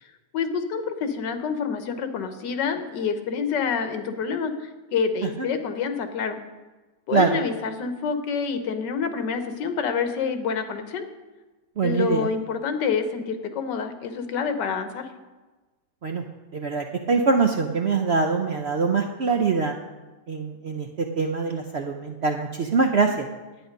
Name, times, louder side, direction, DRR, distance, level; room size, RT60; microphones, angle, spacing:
voice 1, 0.3-6.4 7.1-11.0 11.8-15.1, left 6 dB, 85° left, 8 dB, 1.6 m, -27 dB
voice 2, 11.8-12.3 16.0-16.2 16.5-19.7 20.3-20.9 21.2-23.2, right 4 dB, 65° right, 4 dB, 0.6 m, -23 dB
10.5 x 8.9 x 5.2 m, 1.2 s
omnidirectional pair, 1.8 m